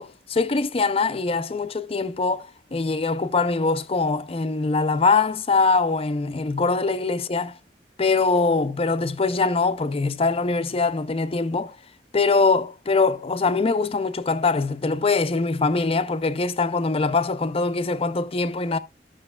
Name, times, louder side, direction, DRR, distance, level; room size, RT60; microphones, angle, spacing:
voice 1, 0.0-7.5 8.0-11.8 12.1-18.8, left 4 dB, 35° left, 0.5 m, -23 dB
14.0 x 6.3 x 2.3 m
head